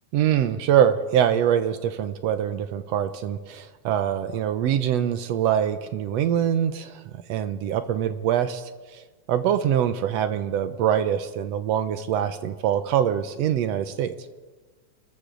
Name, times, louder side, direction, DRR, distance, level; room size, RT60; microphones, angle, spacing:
voice 1, 0.1-7.0 7.3-8.6 8.9-9.0 9.3-14.1, right 9 dB, 75° right, 10 dB, 1.7 m, -24 dB
27.5 x 13.5 x 3.9 m, 1.3 s
omnidirectional pair, 3.4 m